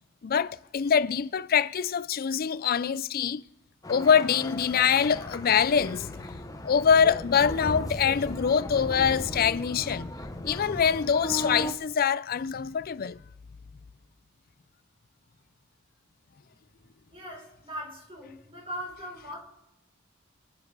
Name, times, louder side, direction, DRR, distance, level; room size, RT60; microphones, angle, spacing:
voice 1, 0.2-3.4 3.9-6.2 6.6-10.1 10.4-13.2, left 7 dB, 50° left, 0.4 m, -24 dB
sound 1, 3.8-11.7, left 1 dB, 20° left, 1.1 m, -36 dB
voice 2, 17.1-19.4, equal, 30° right, 5.5 m, -39 dB
24.5 x 8.3 x 5.4 m
head